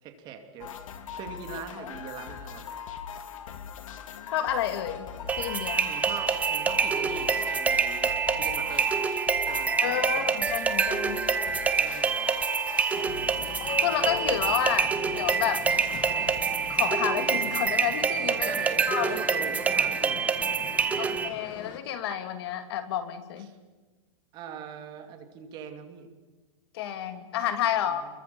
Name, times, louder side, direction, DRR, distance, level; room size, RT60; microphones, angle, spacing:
voice 1, 0.0-0.7 1.1-2.7 5.9-8.9 9.5-10.4 11.8-12.2 13.4-13.6 18.4-20.4 21.0-21.2 23.5-23.6 24.3-26.1 27.9-28.1, right 7 dB, 25° right, 6 dB, 2.6 m, -41 dB
sound 1, 0.6-16.6, left 8 dB, 90° left, 3.2 m, -41 dB
voice 2, 4.3-5.1 5.4-6.0 9.8-11.3 13.6-15.7 16.7-18.6 18.9-19.2 21.0-23.5 26.7-28.0, left 10 dB, 50° left, 8 dB, 2.7 m, -30 dB
sound 2, 5.3-21.3, right 5 dB, 10° right, 0.9 m, -26 dB
sound 3, 12.9-21.8, left 9 dB, 30° left, 1.9 m, -42 dB
28.5 x 22.5 x 7.1 m, 1.2 s
supercardioid pair, 170°, 17 cm